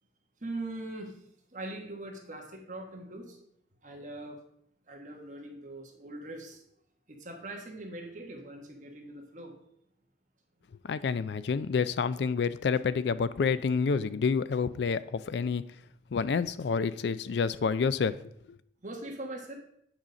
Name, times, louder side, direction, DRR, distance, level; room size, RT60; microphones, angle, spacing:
voice 1, 0.4-1.2 1.5-3.4 3.8-4.4 4.9-6.6 7.1-9.6 18.8-19.6, right 2 dB, 45° right, 1.3 m, -41 dB
voice 2, 10.8-15.6 16.1-18.2 18.5-18.6, left 5 dB, 70° left, 0.4 m, -28 dB
8.9 x 4.1 x 5.1 m
head